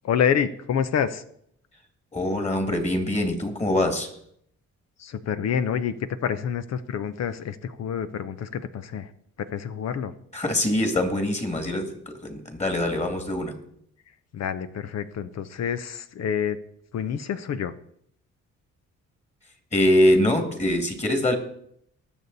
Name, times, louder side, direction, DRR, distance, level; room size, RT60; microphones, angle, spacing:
voice 1, 0.0-1.2 5.0-5.9 6.2-9.1 9.4-10.1 14.3-16.6 16.9-17.7, left 8 dB, 60° left, 12 dB, 0.8 m, -27 dB
voice 2, 2.1-4.2 10.3-13.6 19.7-21.4, left 1 dB, 20° left, 6 dB, 2.5 m, -23 dB
19.5 x 6.9 x 4.1 m, 0.69 s
cardioid pair, 90°, 30 cm